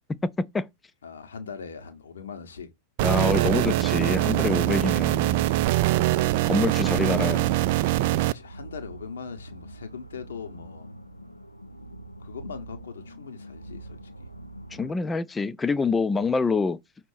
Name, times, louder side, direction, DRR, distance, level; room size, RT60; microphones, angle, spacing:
voice 1, 0.1-0.7 3.0-5.4 6.4-7.6 14.7-16.8, left 4 dB, 15° left, 0.4 m, -26 dB
voice 2, 1.0-2.7 4.7-4.8 5.3-5.4 5.9-6.1 8.2-10.9 12.2-14.3, left 6 dB, 65° left, 1.2 m, -41 dB
sound 1, 3.0-8.3, right 16 dB, 50° right, 0.4 m, -23 dB
sound 2, 3.5-14.9, right 2 dB, 85° left, 0.5 m, -44 dB
6.1 x 2.9 x 5.5 m
figure-of-eight pair, 90°, 0 cm